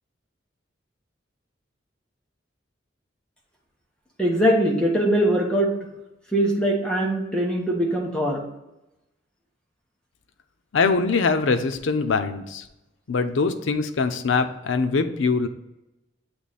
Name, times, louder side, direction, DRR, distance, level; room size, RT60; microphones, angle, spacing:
voice 1, 4.2-5.7 6.3-8.4, right 1 dB, 5° left, -2 dB, 1.0 m, -22 dB
voice 2, 10.7-12.6 13.1-15.5, left 4 dB, 90° left, 10 dB, 0.6 m, -23 dB
7.7 x 3.1 x 4.1 m, 0.95 s
head